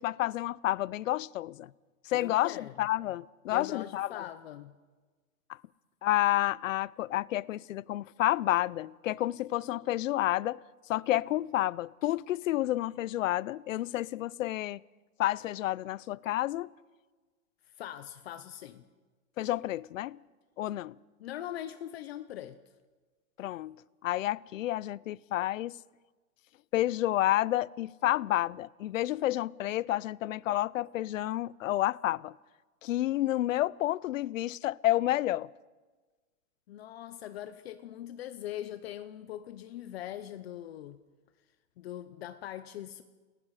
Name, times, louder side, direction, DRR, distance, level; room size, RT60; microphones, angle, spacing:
voice 1, 0.0-1.7 2.1-4.2 6.0-10.6 10.9-14.8 15.2-16.7 19.4-20.2 20.6-21.0 23.4-25.8 26.7-32.4 32.8-35.5, left 14 dB, 65° left, 0.7 m, -30 dB
voice 2, 2.1-2.9 3.5-4.8 17.6-18.8 21.2-22.6 36.7-41.0 41.8-43.0, left 12 dB, 45° left, 0.9 m, -41 dB
29.5 x 21.0 x 4.9 m
supercardioid pair, 170°, 43 cm